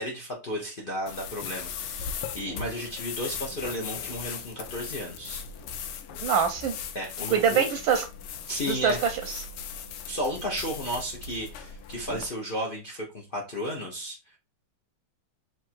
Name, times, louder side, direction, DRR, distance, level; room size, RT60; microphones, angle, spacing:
voice 1, 0.0-5.4 6.9-7.6 8.5-9.0 10.1-14.2, equal, 65° left, -2 dB, 0.5 m, -33 dB
sound 1, 1.1-12.3, left 7 dB, 85° left, 1.5 m, -38 dB
voice 2, 6.2-6.8 7.3-8.1 8.7-9.4, right 7 dB, 75° right, 6 dB, 1.2 m, -24 dB
3.6 x 3.2 x 4.3 m, 0.29 s
omnidirectional pair, 2.4 m